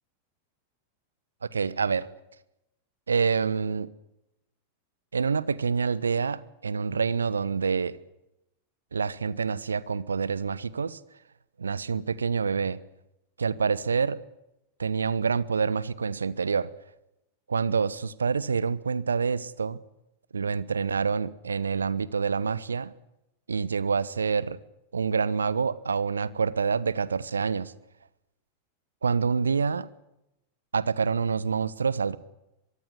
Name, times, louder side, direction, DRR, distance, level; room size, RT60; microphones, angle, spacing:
voice 1, 1.4-2.1 3.1-3.9 5.1-8.0 8.9-11.0 11.6-12.8 13.4-14.2 14.8-16.7 17.5-19.8 20.3-22.9 23.5-24.6 24.9-27.7 29.0-29.9 30.7-32.2, right 5 dB, 75° right, 1.2 m, -27 dB
23.5 x 23.5 x 8.2 m
figure-of-eight pair, 90°, 0 cm